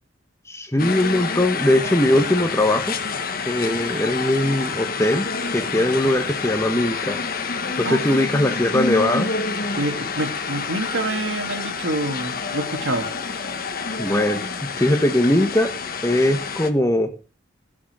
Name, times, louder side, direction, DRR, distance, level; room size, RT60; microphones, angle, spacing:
voice 1, 0.5-2.9 3.4-5.3 5.5-7.2 7.8-9.3 14.0-14.4 14.8-15.7 16.0-17.1, left 1 dB, 15° left, 7 dB, 1.3 m, -20 dB
sound 1, 0.8-16.7, left 4 dB, 50° left, 1.4 m, -28 dB
voice 2, 9.7-13.1, right 2 dB, 75° right, 4 dB, 2.5 m, -27 dB
16.0 x 6.2 x 6.7 m, 0.36 s
head